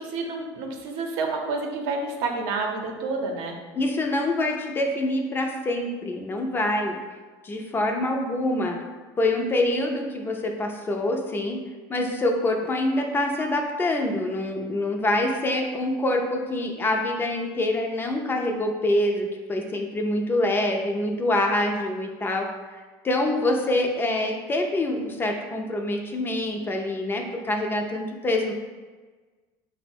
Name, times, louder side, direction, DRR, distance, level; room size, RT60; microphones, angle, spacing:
voice 1, 0.0-3.6, right 3 dB, 75° right, 2 dB, 0.6 m, -29 dB
voice 2, 3.7-7.0 7.4-8.8 9.2-11.6 11.9-22.8 23.0-28.5, left 1 dB, 20° left, 2 dB, 0.4 m, -25 dB
3.8 x 2.1 x 4.3 m, 1.4 s
supercardioid pair, 120°, 10 cm